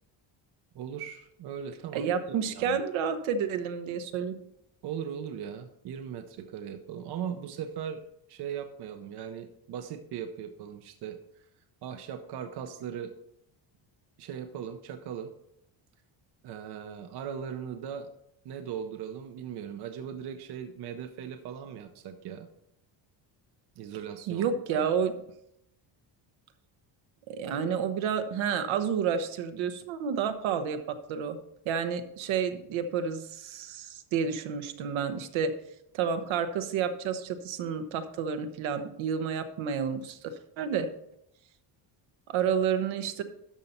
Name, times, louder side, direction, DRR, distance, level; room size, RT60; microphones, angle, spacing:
voice 1, 0.7-2.8 4.8-8.0 8.3-11.5 11.8-13.1 14.2-15.3 16.4-18.1 18.4-22.5 23.8-24.9, right 8 dB, 55° right, 7 dB, 0.8 m, -39 dB
voice 2, 1.9-4.4 24.3-25.1 27.3-31.4 31.6-35.5 35.9-40.9 42.3-43.2, right 7 dB, 75° right, 8 dB, 1.1 m, -30 dB
13.0 x 5.4 x 4.3 m, 0.76 s
cardioid pair, 170°, 48 cm